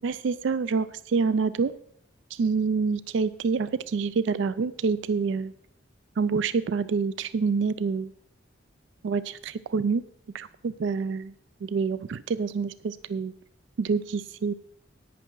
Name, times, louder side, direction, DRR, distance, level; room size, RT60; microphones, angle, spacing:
voice 1, 0.0-1.7 2.3-5.5 6.2-8.1 9.0-10.0 10.3-11.3 11.6-13.3 13.8-14.5, right 5 dB, 70° right, 16 dB, 0.4 m, -27 dB
11.0 x 9.2 x 4.6 m, 0.72 s
head